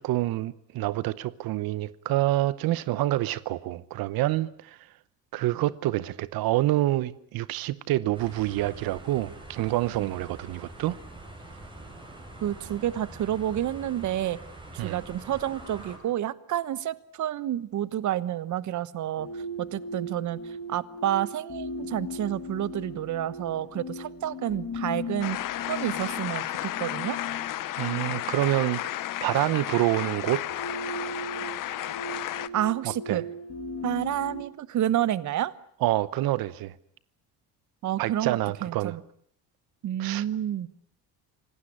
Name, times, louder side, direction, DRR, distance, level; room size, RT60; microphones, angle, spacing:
voice 1, 0.0-4.8 5.3-11.0 14.8-15.0 27.8-30.4 33.1-33.2 35.8-36.7 38.0-38.9 40.0-40.2, right 16 dB, 90° right, 1.0 m, -27 dB
sound 1, 8.1-16.0, right 2 dB, 15° right, 6.7 m, -45 dB
voice 2, 12.4-14.4 14.7-25.4 25.7-27.2 32.5-33.2 33.8-35.5 37.8-39.0 39.8-40.7, right 11 dB, 55° right, 1.2 m, -29 dB
Slow Sad Tones, 19.2-34.4, left 1 dB, 40° left, 2.7 m, -39 dB
sound 2, 25.2-32.5, left 14 dB, 65° left, 1.0 m, -33 dB
26.5 x 18.5 x 10.0 m
cardioid pair, 150°, 34 cm